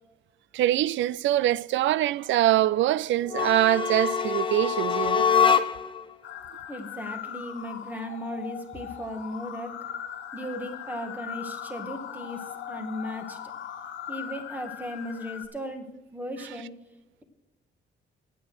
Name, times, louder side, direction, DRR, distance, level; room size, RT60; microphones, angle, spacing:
voice 1, 0.5-5.3, right 14 dB, 75° right, 0.4 m, -24 dB
sound 1, 3.3-6.0, left 7 dB, 25° left, 0.9 m, -24 dB
sound 2, 6.2-15.5, left 9 dB, 75° left, 1.4 m, -39 dB
voice 2, 6.7-9.8 10.3-13.4 14.1-15.9 16.1-16.7, left 1 dB, 10° right, 2.2 m, -36 dB
9.3 x 9.2 x 6.4 m
cardioid pair, 90°, 20 cm